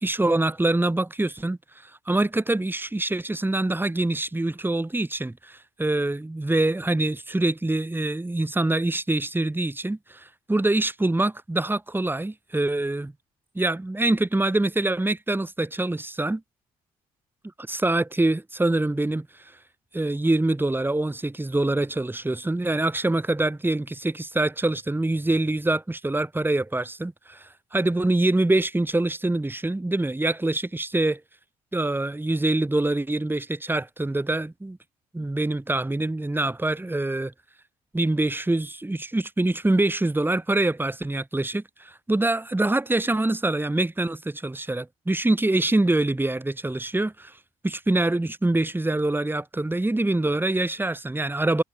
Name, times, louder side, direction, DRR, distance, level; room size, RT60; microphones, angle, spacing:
voice 1, 0.0-13.1 13.6-16.4 17.7-19.5 19.9-31.2 31.7-34.8 35.1-37.3 37.9-47.4 47.6-51.6, right 2 dB, 10° right, 1.7 m, -25 dB
hypercardioid pair, 45°, 17 cm